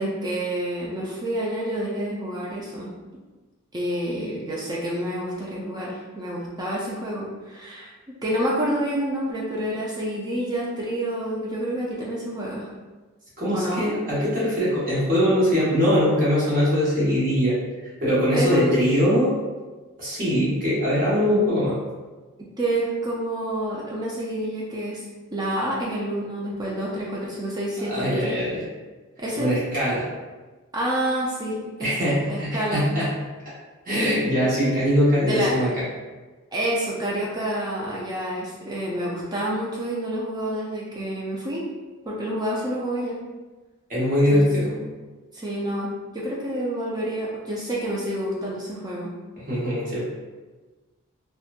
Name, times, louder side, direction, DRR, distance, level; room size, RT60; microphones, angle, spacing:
voice 1, 0.0-2.9 3.7-12.7 13.5-13.8 18.3-18.8 22.6-25.0 25.3-28.3 29.2-29.5 30.7-32.8 35.2-35.5 36.5-41.7 42.0-43.2 44.3-44.9 45.3-49.1, right 1 dB, 15° right, -5 dB, 0.3 m, -28 dB
voice 2, 13.4-17.5 17.8-19.3 20.0-21.8 27.9-28.6 29.3-30.1 31.8-33.1 33.8-35.8 43.9-44.7 49.4-50.0, equal, 40° right, -9 dB, 1.0 m, -22 dB
2.9 x 2.2 x 2.4 m, 1.3 s
head